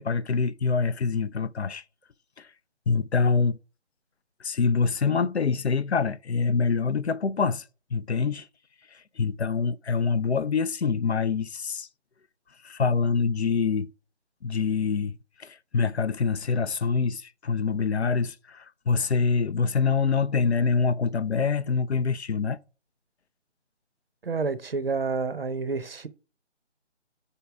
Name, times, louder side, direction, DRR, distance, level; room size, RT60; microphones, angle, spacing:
voice 1, 0.0-1.8 2.4-2.5 2.9-3.6 4.4-7.6 7.9-8.5 8.9-11.9 12.6-13.9 14.4-22.6, left 5 dB, 65° left, 0.5 m, -25 dB
voice 2, 24.2-26.1, right 4 dB, 55° right, 0.6 m, -29 dB
5.5 x 3.6 x 5.8 m
figure-of-eight pair, 155°, 36 cm